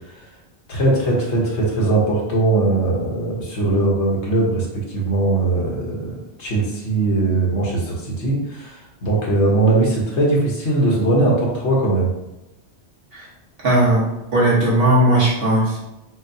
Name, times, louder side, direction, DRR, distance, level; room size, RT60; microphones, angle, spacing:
voice 1, 0.7-12.1, right 2 dB, 85° left, -2 dB, 1.3 m, -20 dB
voice 2, 13.6-14.1 14.3-15.8, right 1 dB, 55° right, -7 dB, 1.5 m, -17 dB
6.1 x 2.0 x 2.6 m, 0.95 s
omnidirectional pair, 1.1 m